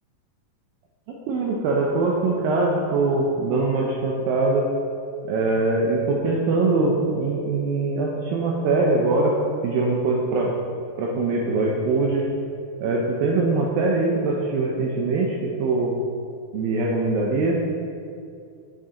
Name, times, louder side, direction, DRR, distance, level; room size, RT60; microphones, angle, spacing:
voice 1, 1.1-4.7 5.2-9.3 9.6-10.5 11.0-12.3 12.8-15.9 16.5-17.6, right 3 dB, 80° right, -2 dB, 2.1 m, -22 dB
7.5 x 7.1 x 3.7 m, 2.4 s
omnidirectional pair, 4.8 m